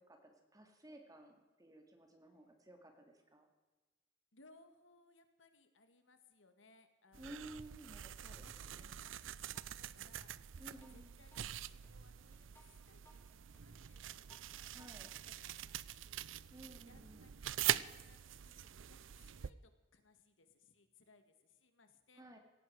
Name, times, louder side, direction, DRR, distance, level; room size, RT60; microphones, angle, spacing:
voice 1, 0.0-3.5 7.1-8.9 10.6-11.1 14.7-15.1 16.5-17.3 22.2-22.4, right 1 dB, 20° right, 4 dB, 2.5 m, -55 dB
voice 2, 4.3-7.7 8.2-11.5 11.7-16.5 16.8-17.5 17.7-22.2, left 3 dB, 85° left, 8 dB, 1.8 m, -68 dB
sound 1, 7.1-19.5, right 11 dB, 80° right, 0.5 m, -44 dB
sound 2, 8.3-9.2 9.5-15.2, right 1 dB, 10° left, 2.5 m, -64 dB
18.0 x 15.5 x 4.8 m, 1.2 s
head